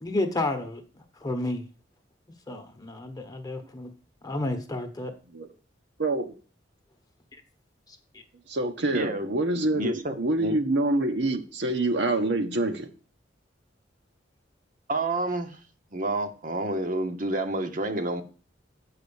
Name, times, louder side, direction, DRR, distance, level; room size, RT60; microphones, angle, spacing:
voice 1, 0.0-0.8 1.2-1.6 2.5-3.9 4.2-5.1 7.9-8.2, left 2 dB, 20° left, 1.0 m, -31 dB
voice 2, 6.0-6.3 8.5-12.9, right 2 dB, 70° right, 1.1 m, -26 dB
voice 3, 8.9-9.3 9.7-10.6 14.9-15.6 15.9-18.2, right 2 dB, 45° right, 1.0 m, -29 dB
7.6 x 4.9 x 7.0 m
head